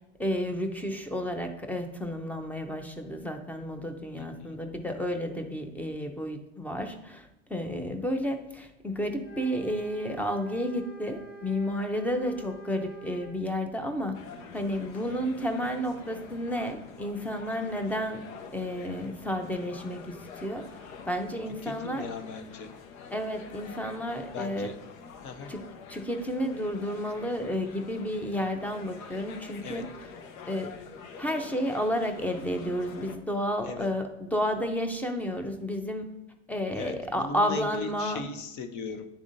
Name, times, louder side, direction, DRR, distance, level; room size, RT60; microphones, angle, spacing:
voice 1, 0.2-14.2 14.5-18.2 18.5-22.1 23.1-24.7 25.5-25.6 25.9-29.9 30.5-30.8 31.2-36.1 36.5-38.2, equal, 5° left, 6 dB, 0.6 m, -31 dB
voice 2, 4.2-4.6 21.6-22.7 24.3-24.7 25.2-25.5 29.6-29.8 33.6-33.9 36.8-39.1, left 5 dB, 45° left, 7 dB, 0.9 m, -38 dB
sound 1, 9.2-13.4, right 3 dB, 70° left, 1.7 m, -45 dB
sound 2, 14.1-33.2, left 5 dB, 90° left, 0.8 m, -46 dB
10.0 x 3.6 x 2.6 m, 0.92 s
supercardioid pair, 105°, 40 cm